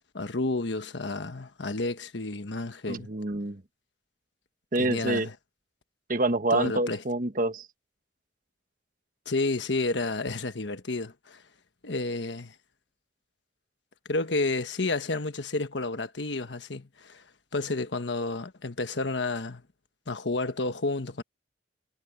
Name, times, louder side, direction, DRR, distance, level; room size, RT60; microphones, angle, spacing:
voice 1, 0.1-3.1 4.8-5.3 6.5-7.0 9.2-11.4 11.8-12.5 14.1-17.2 17.5-19.6 20.1-21.2, left 2 dB, 70° left, 1.3 m, -30 dB
voice 2, 2.9-3.6 4.7-5.3 6.1-7.7, right 2 dB, 45° right, 1.4 m, -27 dB
head